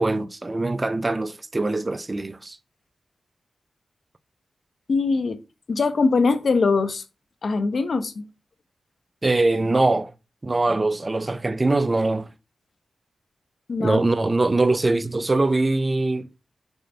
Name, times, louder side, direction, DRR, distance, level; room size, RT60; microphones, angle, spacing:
voice 1, 0.0-2.6 9.2-10.1 10.4-12.3 13.8-16.3, right 2 dB, 30° right, 0.7 m, -22 dB
voice 2, 4.9-5.4 5.7-7.0 7.4-8.2 13.7-14.0, left 4 dB, 65° left, 1.0 m, -22 dB
9.1 x 3.3 x 5.5 m
cardioid pair, 55°, 0 cm